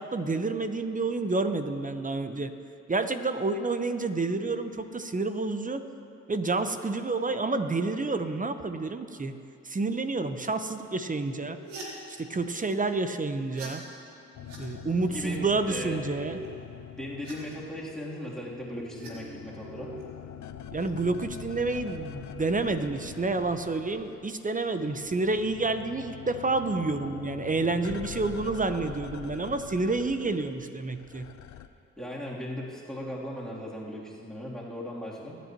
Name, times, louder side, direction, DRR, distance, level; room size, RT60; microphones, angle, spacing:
voice 1, 0.0-2.5 2.9-5.8 6.3-9.3 9.6-11.6 12.2-13.8 14.6-16.4 20.7-31.3, right 3 dB, 25° right, 9 dB, 0.9 m, -29 dB
sound 1, 11.2-12.7 13.3-13.7 14.1-14.6 15.3-15.5 15.8-16.5 16.9-19.1 19.5-20.9 21.4-21.7 22.5-23.0, right 3 dB, 90° right, 1.8 m, -47 dB
sound 2, 14.3-18.1 18.4-24.4 24.6-31.7, left 10 dB, 60° left, 0.7 m, -44 dB
voice 2, 15.1-16.0 17.0-19.9 32.0-35.4, left 1 dB, ahead, -6 dB, 3.2 m, -37 dB
22.5 x 9.2 x 3.0 m, 2.5 s
hypercardioid pair, 45°, 32 cm